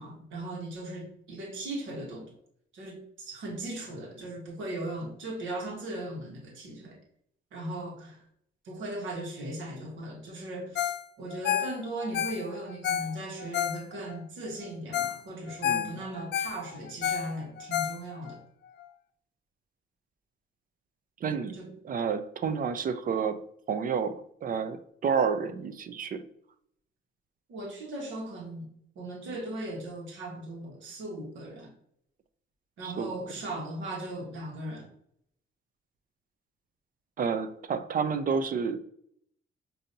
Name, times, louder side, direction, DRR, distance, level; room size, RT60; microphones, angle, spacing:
voice 1, 0.0-2.3 2.7-7.0 7.5-8.2 8.6-10.9 11.2-18.4 21.5-21.7 27.5-28.7 28.9-31.7 32.8-34.9, right 1 dB, 75° right, -1 dB, 1.3 m, -38 dB
Ringtone, 10.7-11.0 11.3-14.2 14.6-14.7 14.9-15.2 15.5-18.4 18.8-18.9, left 10 dB, 60° left, 0.4 m, -31 dB
voice 2, 15.6-16.0 21.2-26.2 32.8-33.1 37.2-38.8, right 6 dB, 45° right, 11 dB, 0.5 m, -30 dB
5.1 x 2.7 x 2.7 m, 0.68 s
cardioid pair, 90°, 20 cm